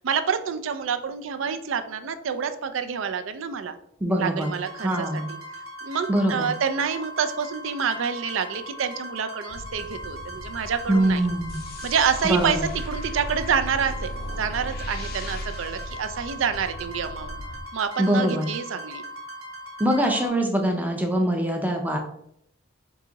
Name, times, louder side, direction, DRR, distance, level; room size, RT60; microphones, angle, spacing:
voice 1, 0.0-3.8 4.2-5.2 5.8-11.2 11.8-12.6 12.9-17.4 17.7-19.0, right 6 dB, 70° right, 9 dB, 0.4 m, -27 dB
voice 2, 4.0-4.5 4.8-5.3 6.1-6.5 10.9-11.6 12.2-12.7 18.0-18.5 19.8-22.0, right 1 dB, 10° right, 2 dB, 0.5 m, -23 dB
sound 1, 4.4-20.3, equal, 90° right, 1.3 m, -39 dB
sound 2, 9.5-17.6, left 1 dB, 80° left, 0.6 m, -41 dB
sound 3, 11.5-16.8, equal, 45° left, 0.4 m, -37 dB
4.7 x 2.8 x 3.9 m, 0.73 s
head